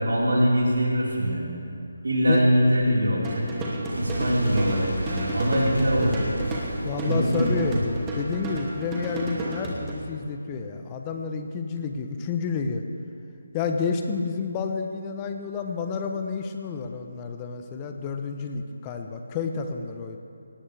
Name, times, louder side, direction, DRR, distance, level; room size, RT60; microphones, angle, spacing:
voice 1, 0.0-1.5 2.0-3.4 3.9-6.2 7.0-7.8, equal, 70° right, -5 dB, 4.5 m, -23 dB
sound 1, 3.2-9.9, right 2 dB, 15° right, 2.4 m, -33 dB
Boom, 3.9-9.5, right 1 dB, 85° right, 3.8 m, -34 dB
voice 2, 6.8-12.8 13.5-20.2, left 5 dB, 20° left, 5 dB, 0.8 m, -30 dB
18.5 x 18.0 x 3.4 m, 2.6 s
figure-of-eight pair, 150°, 0 cm